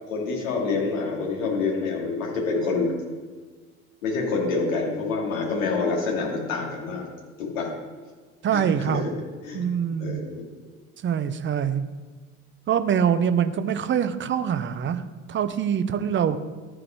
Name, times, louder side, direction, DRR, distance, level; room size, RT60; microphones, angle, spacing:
voice 1, 0.1-2.9 4.0-7.0 7.4-7.7 8.5-9.1 9.4-9.6 10.0-10.4, left 4 dB, 70° left, -2 dB, 2.9 m, -27 dB
voice 2, 8.4-9.0 9.5-10.2 11.0-11.9 12.7-15.0 15.3-16.4, right 8 dB, 30° right, 10 dB, 0.8 m, -24 dB
14.0 x 5.0 x 4.7 m, 1.4 s
figure-of-eight pair, 65°, 41 cm